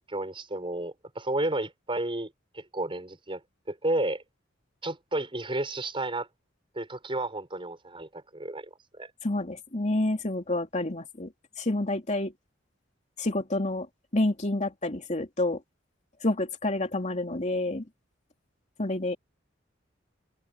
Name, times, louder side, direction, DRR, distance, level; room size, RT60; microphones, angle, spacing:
voice 1, 0.0-3.4 3.7-4.2 4.8-6.3 6.7-9.1, right 2 dB, 30° right, 5.4 m, -32 dB
voice 2, 9.2-11.3 11.6-12.3 13.2-13.9 14.1-15.6 16.2-17.8 18.8-19.2, left 2 dB, 40° left, 2.9 m, -28 dB
head